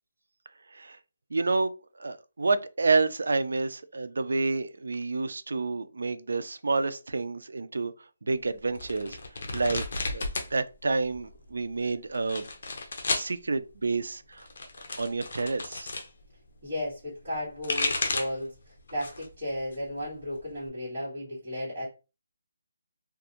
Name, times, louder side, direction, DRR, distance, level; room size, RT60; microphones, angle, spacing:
voice 1, 1.3-1.7 2.0-7.9 8.2-9.2 9.5-9.8 10.1-12.5 13.1-14.5 15.0-15.9, right 3 dB, 75° right, 0.3 m, -29 dB
sound 1, 8.8-10.5 10.8-11.5 12.1-13.3 14.3-16.1 17.3-18.4 18.9-19.3 19.7-20.7, left 3 dB, 45° left, 0.6 m, -33 dB
voice 2, 16.6-18.5 18.9-21.9, left 1 dB, 30° right, 1.3 m, -34 dB
2.4 x 2.3 x 2.8 m
hypercardioid pair, 175°, 0 cm